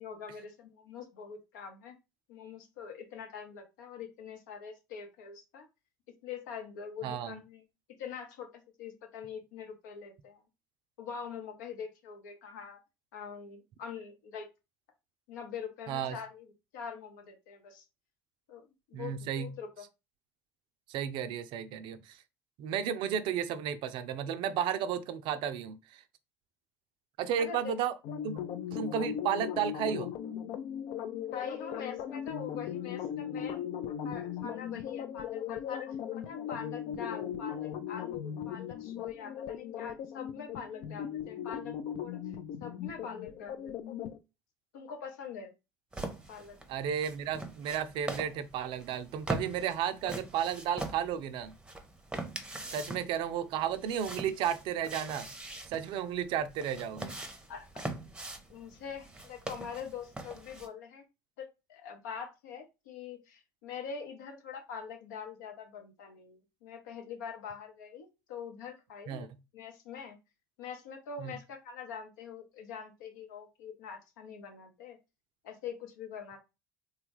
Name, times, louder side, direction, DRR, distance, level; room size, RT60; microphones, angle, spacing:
voice 1, 0.0-2.0 2.3-5.7 6.1-10.4 11.0-12.8 13.1-14.5 15.3-17.8 18.5-19.9 27.4-27.7 28.7-28.9 31.3-33.7 34.0-35.9 36.1-42.2 42.6-44.0 44.7-45.5 46.3-46.6 57.5-57.9 58.5-61.0 61.4-69.3 69.5-70.2 70.6-75.0 75.4-76.4, left 7 dB, 80° left, 0.8 m, -44 dB
voice 2, 7.0-7.4 15.9-16.2 18.9-19.5 20.9-22.2 22.6-26.0 27.2-27.9 28.2-28.4 28.7-30.1 46.7-51.6 52.7-55.3 55.7-57.2 69.1-69.3 71.2-71.3, right 9 dB, 60° right, 0.4 m, -33 dB
sound 1, 28.0-44.2, left 9 dB, 60° left, 0.4 m, -38 dB
sound 2, 45.9-60.7, right 2 dB, 10° right, 0.7 m, -42 dB
3.3 x 2.3 x 3.0 m
hypercardioid pair, 75°, 10 cm